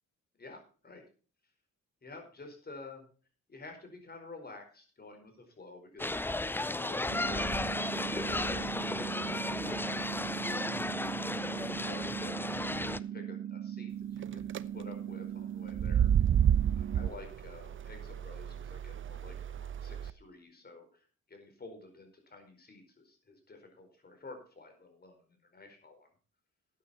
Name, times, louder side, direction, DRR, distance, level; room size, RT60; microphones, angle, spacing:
voice 1, 0.4-1.0 2.0-3.1 3.5-10.4 11.1-16.3 16.7-26.1, left 3 dB, 30° left, 4 dB, 4.8 m, -51 dB
sound 1, 6.0-13.0, left 2 dB, 5° left, 0.5 m, -34 dB
sound 2, 7.1-17.1, right 10 dB, 70° right, 1.2 m, -40 dB
sound 3, 14.2-14.6 15.7-20.1, right 9 dB, 40° right, 0.7 m, -30 dB
13.5 x 9.4 x 4.3 m, 0.39 s
cardioid pair, 90°, 30 cm